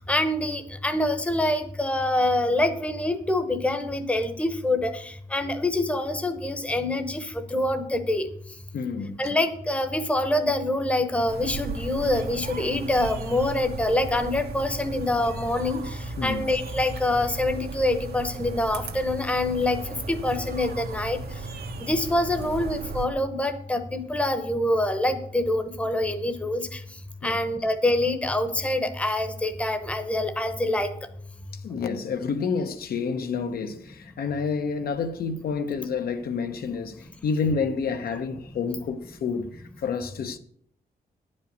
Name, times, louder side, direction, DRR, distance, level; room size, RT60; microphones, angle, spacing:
voice 1, 0.1-8.3 9.2-21.2 21.8-26.8 27.2-30.9, left 1 dB, 10° left, 0.9 m, -25 dB
voice 2, 8.7-9.2 16.2-16.4 27.2-27.4 31.6-40.4, left 5 dB, 70° left, 0.9 m, -29 dB
sound 1, 11.3-23.1, right 3 dB, 85° right, 1.4 m, -36 dB
10.5 x 5.5 x 8.0 m
wide cardioid pair, 170°, 16 cm